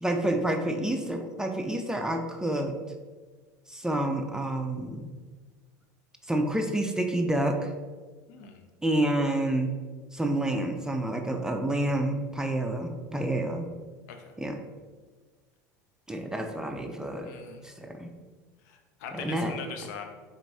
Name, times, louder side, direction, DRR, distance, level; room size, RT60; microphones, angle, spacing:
voice 1, 0.0-2.8 3.7-5.1 6.3-7.7 8.8-9.7 10.1-13.7 14.4-14.6 16.1-17.3 17.6-18.1 19.1-19.5, right 1 dB, 5° right, 4 dB, 0.4 m, -29 dB
voice 2, 8.3-8.6 14.1-14.3 17.2-17.6 18.6-20.0, left 6 dB, 75° left, 5 dB, 0.5 m, -41 dB
4.4 x 3.5 x 2.7 m, 1.4 s
hypercardioid pair, 90°, 9 cm